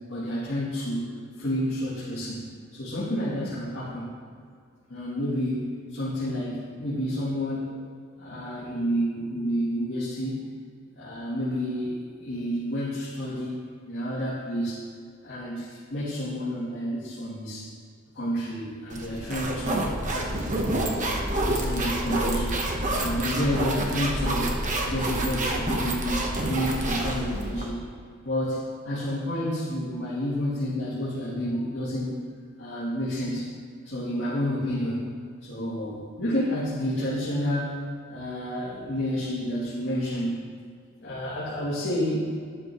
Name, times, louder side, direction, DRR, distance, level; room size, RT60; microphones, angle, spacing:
voice 1, 0.1-1.1 1.4-2.4 2.7-4.1 4.9-5.6 5.9-10.4 11.0-13.6 13.9-14.8 15.2-17.7 18.1-20.4 20.7-21.2 21.5-22.6 22.9-24.5 24.8-27.9 28.2-32.2 32.6-33.5 33.8-35.0 35.4-37.8 38.1-40.4 41.0-42.4, equal, 55° left, -11 dB, 2.8 m, -30 dB
sound 1, 18.9-27.7, right 1 dB, 35° right, 1.1 m, -28 dB
12.5 x 9.1 x 3.1 m, 2.2 s
head